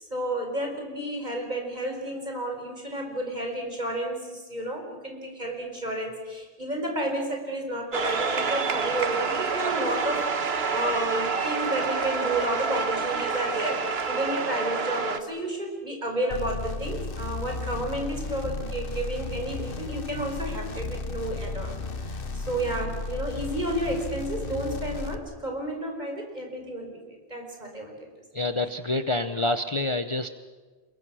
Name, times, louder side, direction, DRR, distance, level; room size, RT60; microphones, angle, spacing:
voice 1, 0.1-28.0, right 1 dB, 40° right, 2 dB, 5.1 m, -31 dB
sound 1, 7.9-15.2, right 5 dB, 70° right, 1.5 m, -28 dB
sound 2, 16.3-25.2, left 3 dB, 55° left, 1.3 m, -34 dB
voice 2, 28.3-30.3, left 2 dB, 30° left, 9 dB, 0.8 m, -27 dB
28.5 x 22.0 x 6.3 m, 1.4 s
omnidirectional pair, 1.1 m